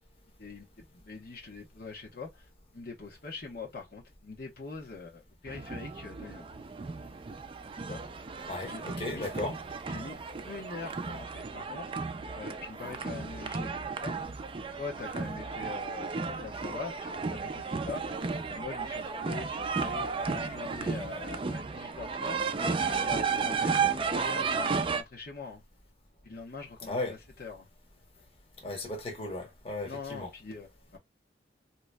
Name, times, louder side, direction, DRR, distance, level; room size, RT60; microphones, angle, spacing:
voice 1, 0.4-2.5 2.7-6.4 7.8-8.0 8.7-9.3 9.9-11.9 12.3-14.4 14.8-22.5 22.9-25.6 26.2-27.7 28.1-28.3 29.8-31.0, left 4 dB, 60° left, 1.1 m, -43 dB
sound 1, 5.5-25.0, right 5 dB, 30° right, 0.4 m, -33 dB
voice 2, 8.5-9.5 26.8-27.2 28.6-30.3, left 2 dB, 35° left, 1.1 m, -35 dB
3.7 x 2.9 x 2.2 m
head